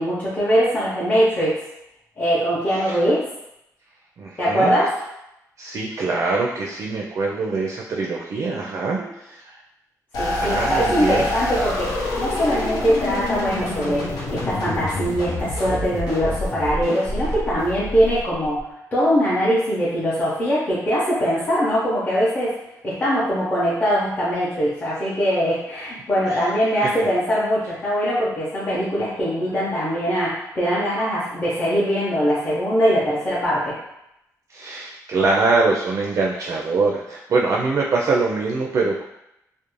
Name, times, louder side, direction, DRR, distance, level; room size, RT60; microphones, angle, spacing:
voice 1, 0.0-1.6 2.2-3.2 4.4-4.9 8.9-9.1 10.2-11.9 12.2-22.5 22.8-33.8, equal, 25° left, -10 dB, 0.6 m, -22 dB
voice 2, 4.2-4.7 5.6-9.6 10.4-11.3 26.2-26.5 26.8-26.9 34.5-39.0, right 3 dB, 50° right, -2 dB, 0.4 m, -23 dB
sound 1, 10.1-18.6, left 2 dB, 85° left, 0.7 m, -27 dB
2.5 x 2.0 x 3.0 m, 0.85 s
wide cardioid pair, 140°, 7 cm